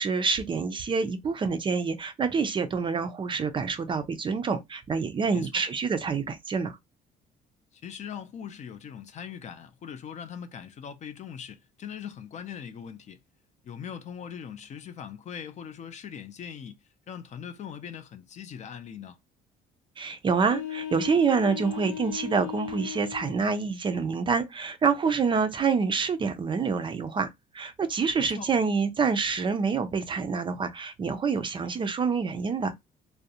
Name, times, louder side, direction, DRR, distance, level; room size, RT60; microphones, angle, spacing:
voice 1, 0.0-6.8 20.0-27.3 27.5-32.7, right 5 dB, 30° right, 0.4 m, -27 dB
voice 2, 5.3-5.6 7.7-13.2 13.6-16.8 17.1-19.2 28.2-28.5, left 8 dB, 45° left, 0.4 m, -41 dB
sound 1, 20.4-23.4, left 11 dB, 85° left, 0.7 m, -36 dB
2.5 x 2.0 x 2.7 m
cardioid pair, 110°, 17 cm